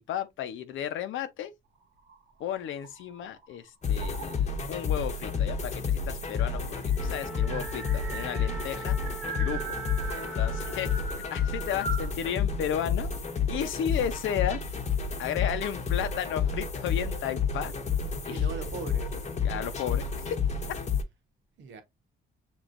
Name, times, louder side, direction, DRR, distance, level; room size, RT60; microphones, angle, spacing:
voice 1, 0.0-1.5 2.4-9.0 9.3-9.8 10.1-10.9 11.3-13.1 13.5-14.6 15.2-17.7 18.3-18.5 19.4-20.4, left 9 dB, 80° left, 0.8 m, -33 dB
sound 1, 2.0-3.5 4.0-4.6 5.6-5.7 6.0-6.1 6.4-12.1, right 4 dB, 85° right, 1.6 m, -40 dB
sound 2, 3.8-21.0, left 6 dB, 35° left, 0.9 m, -30 dB
Wind instrument woodwind instrument, 6.9-11.3, right 3 dB, 5° right, 0.5 m, -43 dB
voice 2, 10.1-11.0 18.3-19.2 21.6-21.8, right 4 dB, 70° right, 1.1 m, -42 dB
6.2 x 3.1 x 2.5 m
cardioid pair, 90°, 20 cm